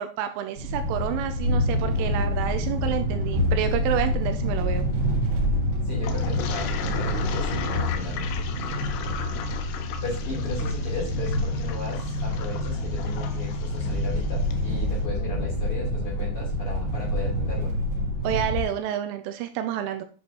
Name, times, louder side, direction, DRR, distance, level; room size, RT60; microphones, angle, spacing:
voice 1, 0.0-4.9 18.2-20.0, right 10 dB, 80° right, 8 dB, 3.0 m, -29 dB
sound 1, 0.6-18.6, left 1 dB, 60° right, 3.5 m, -27 dB
voice 2, 5.8-8.3 10.0-17.7, left 2 dB, 30° left, -5 dB, 3.5 m, -36 dB
Toilet flush, 6.0-14.6, left 6 dB, 90° left, 3.4 m, -37 dB
9.2 x 7.8 x 2.9 m, 0.41 s
omnidirectional pair, 5.8 m